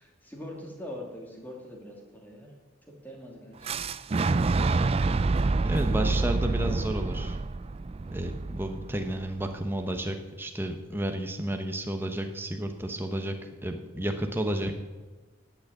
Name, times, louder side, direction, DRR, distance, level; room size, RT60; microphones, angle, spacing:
voice 1, 0.0-2.5 2.9-3.8 5.7-7.0, left 1 dB, 10° left, -1 dB, 2.6 m, -43 dB
Fire / Explosion, 3.6-9.5, right 3 dB, 30° right, 0.3 m, -27 dB
voice 2, 5.6-7.4 8.1-13.3 13.6-14.8, right 1 dB, 10° right, 5 dB, 0.9 m, -32 dB
10.5 x 8.4 x 9.3 m, 1.3 s
head